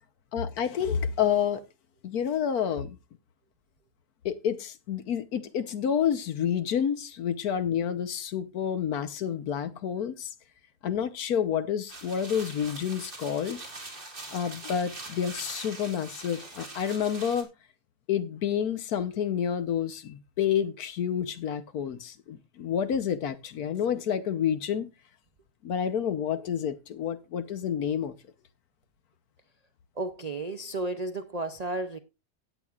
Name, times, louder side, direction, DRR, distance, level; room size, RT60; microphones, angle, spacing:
voice 1, 0.3-1.6 2.0-3.0 4.2-10.3 10.8-13.6 14.3-17.5 18.1-24.9 25.6-28.1, left 8 dB, 80° left, 1.4 m, -29 dB
sound 1, 11.9-17.4, right 2 dB, 35° right, 2.4 m, -43 dB
voice 2, 30.0-32.0, right 2 dB, 55° right, 0.4 m, -33 dB
16.5 x 8.2 x 2.4 m
omnidirectional pair, 1.6 m